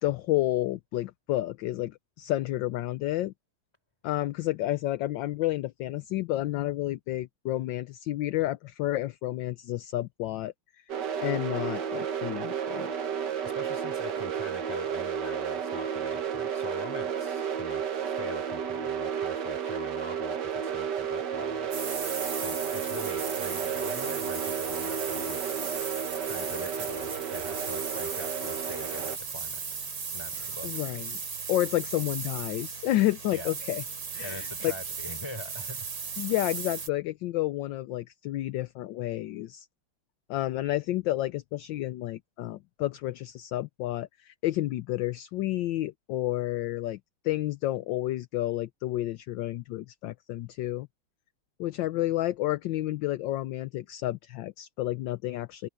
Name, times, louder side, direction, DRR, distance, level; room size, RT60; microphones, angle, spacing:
voice 1, 0.0-3.3 4.0-10.5 11.2-12.9 30.3-31.2 31.5-33.8 34.1-34.7 36.2-39.7 40.3-47.0 47.2-50.9 51.6-55.7, left 15 dB, 70° left, 1.2 m, -30 dB
sound 1, 10.9-29.2, right 7 dB, 55° right, 1.9 m, -32 dB
voice 2, 13.4-21.9 22.4-25.6 26.2-30.7 33.3-33.5 34.2-35.9, left 1 dB, 10° left, 4.1 m, -43 dB
sound 2, 21.7-36.9, right 5 dB, 75° right, 3.6 m, -36 dB
omnidirectional pair, 2.3 m